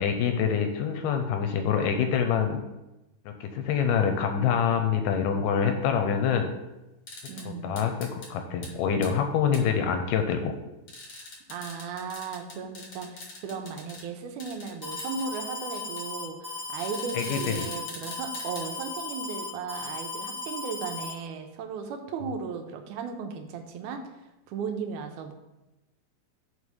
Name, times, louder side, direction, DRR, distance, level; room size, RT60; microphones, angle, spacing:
voice 1, 0.0-2.6 3.3-6.5 7.5-10.5 17.1-17.7, left 7 dB, 80° left, 6 dB, 2.1 m, -26 dB
sound 1, 7.1-7.5 7.8-8.3 8.6-8.7 9.0-9.1 9.5-9.6 10.9-14.0 14.4-15.4 15.7-16.0 16.8-18.6, left 3 dB, 50° left, 1.6 m, -42 dB
voice 2, 7.3-7.8 11.5-24.0 24.5-25.3, right 6 dB, 75° right, 5 dB, 2.1 m, -36 dB
Alarm, 14.8-21.1, left 3 dB, 15° right, 1.7 m, -36 dB
5.3 x 4.9 x 6.2 m, 0.99 s
omnidirectional pair, 4.0 m